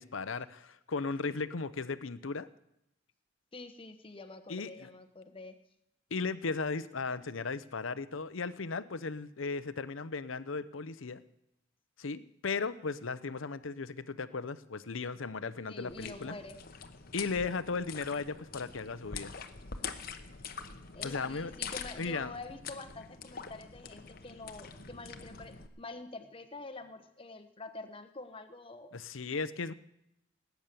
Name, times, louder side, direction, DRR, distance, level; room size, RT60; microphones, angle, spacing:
voice 1, 0.0-2.5 4.5-4.9 6.1-11.2 12.0-16.4 17.1-19.4 21.0-21.5 22.0-22.3 28.9-29.7, left 4 dB, 75° left, 14 dB, 0.8 m, -36 dB
voice 2, 3.5-5.6 15.7-16.6 19.8-20.0 20.9-28.9, left 3 dB, 25° left, 8 dB, 1.2 m, -47 dB
sound 1, 15.9-25.7, left 6 dB, 50° left, 1.1 m, -44 dB
19.5 x 9.3 x 6.9 m, 0.82 s
head